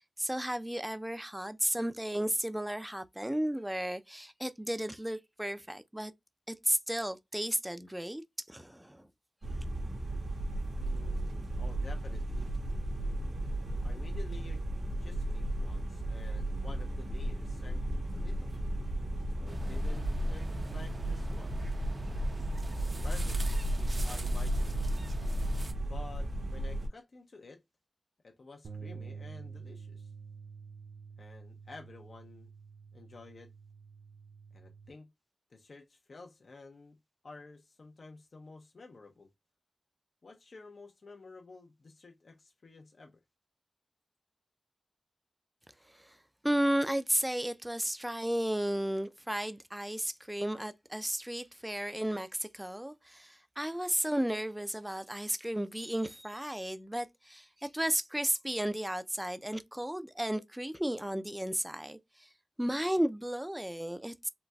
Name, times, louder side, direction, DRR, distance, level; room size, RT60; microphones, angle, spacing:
voice 1, 0.2-6.1 6.5-9.1 46.0-46.2 46.4-62.3 62.6-64.3, right 1 dB, 10° right, 0.4 m, -34 dB
sound 1, 9.4-26.9, right 1 dB, 75° right, 1.1 m, -34 dB
voice 2, 10.8-12.5 13.8-14.6 15.0-17.8 18.1-18.5 19.4-21.5 23.0-24.7 25.9-27.6 28.2-30.1 31.2-32.5 32.9-33.5 34.5-35.1 35.5-37.0 37.2-39.3 40.2-43.2, left 3 dB, 70° left, 0.6 m, -51 dB
sound 2, 19.5-25.7, right 2 dB, 50° right, 0.6 m, -43 dB
sound 3, 28.6-34.9, right 5 dB, 90° right, 0.3 m, -48 dB
4.0 x 2.2 x 2.2 m
cardioid pair, 60°, 0 cm